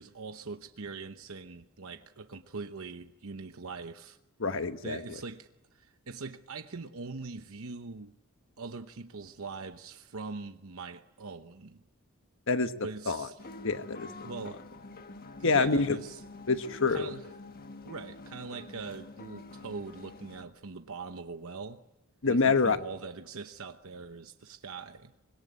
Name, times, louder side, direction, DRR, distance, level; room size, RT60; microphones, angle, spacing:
voice 1, 0.0-4.2 4.8-8.2 8.6-11.8 12.8-13.4 14.2-14.6 15.4-16.2 16.9-17.2 17.8-21.8 22.2-25.1, right 4 dB, 70° right, 0.9 m, -42 dB
voice 2, 4.4-5.2 12.5-12.7 13.1-13.3 13.6-14.1 15.4-16.0 16.5-17.1 22.2-22.8, left 4 dB, 60° left, 1.3 m, -26 dB
sound 1, 13.4-20.4, left 2 dB, 45° left, 1.5 m, -47 dB
25.0 x 21.5 x 9.6 m
head